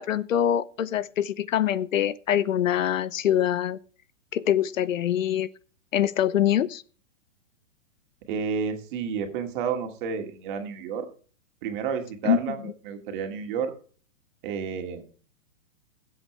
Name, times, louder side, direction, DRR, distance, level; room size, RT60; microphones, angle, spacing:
voice 1, 0.0-3.8 4.3-5.5 5.9-6.8 12.2-12.6, left 10 dB, 90° left, 0.9 m, -24 dB
voice 2, 8.3-11.1 11.6-12.6 12.8-13.7 14.4-15.0, right 6 dB, 40° right, 2.3 m, -30 dB
18.5 x 8.0 x 3.3 m
hypercardioid pair, 155°, 38 cm